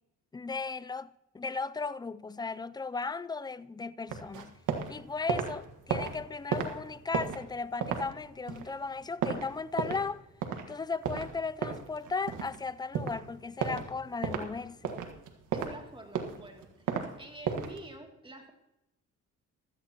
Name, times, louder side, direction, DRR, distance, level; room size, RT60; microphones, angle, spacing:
voice 1, 0.3-1.1 1.3-4.6 4.9-10.2 10.7-15.0, left 4 dB, 15° left, 0.4 m, -36 dB
sound 1, 4.1-4.9 5.2-10.1 10.4-10.6 11.0-12.6 12.9-13.2 13.6-13.9 14.2-14.5 14.8-15.8 16.1-17.1 17.4-17.8, right 7 dB, 90° right, 1.7 m, -33 dB
voice 2, 15.5-16.9 17.2-18.5, right 1 dB, 15° right, 2.6 m, -47 dB
16.0 x 13.0 x 2.9 m
cardioid pair, 90°, 30 cm